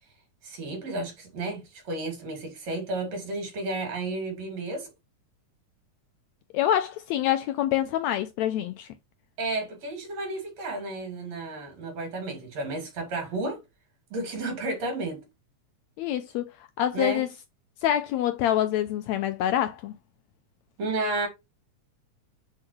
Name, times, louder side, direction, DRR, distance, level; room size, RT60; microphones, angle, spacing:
voice 1, 0.4-4.9 9.4-13.6 14.1-15.2 16.9-17.2 20.8-21.3, right 2 dB, 60° right, 3.6 m, -32 dB
voice 2, 6.5-8.9 16.0-16.5 16.8-17.3 17.8-19.9, left 11 dB, 80° left, 1.6 m, -26 dB
6.6 x 4.8 x 3.1 m
omnidirectional pair, 3.5 m